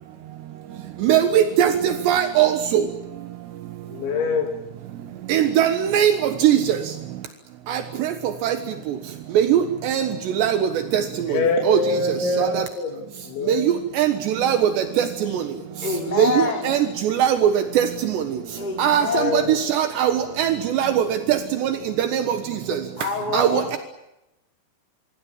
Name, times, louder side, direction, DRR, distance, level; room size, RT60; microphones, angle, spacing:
voice 1, 1.0-1.7 2.1-2.5 5.3-6.1 6.4-6.6 8.4-8.5 9.4-9.6 9.9-10.0 10.4-10.5 11.7-11.8 14.0-14.1 14.4-14.6 16.7-16.8 17.2-17.4 17.8-17.9 18.8-19.0 19.8-20.1 20.4-20.5 20.8-20.9 22.1-22.2 23.3-23.5, right 10 dB, 75° right, 8 dB, 3.4 m, -18 dB
voice 2, 3.9-4.5 11.0-13.7 15.3-15.4 19.1-19.6 23.3-23.5, left 3 dB, 85° left, 1 dB, 5.0 m, -25 dB
voice 3, 15.8-16.8 18.6-19.5 23.0-23.8, left 4 dB, 10° left, 1 dB, 4.5 m, -27 dB
26.5 x 24.0 x 7.5 m, 0.93 s
omnidirectional pair, 5.2 m